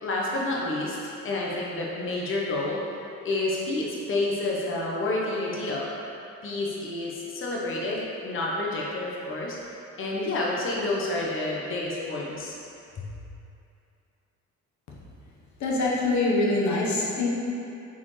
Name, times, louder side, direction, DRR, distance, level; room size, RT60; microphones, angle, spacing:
voice 1, 0.0-2.8 3.2-5.9 6.4-9.6 10.0-12.5 13.0-13.1, left 2 dB, 45° left, -4 dB, 0.9 m, -29 dB
voice 2, 15.6-17.3, left 2 dB, 70° left, -4 dB, 1.1 m, -24 dB
6.9 x 4.4 x 3.2 m, 2.7 s
cardioid pair, 90°, 30 cm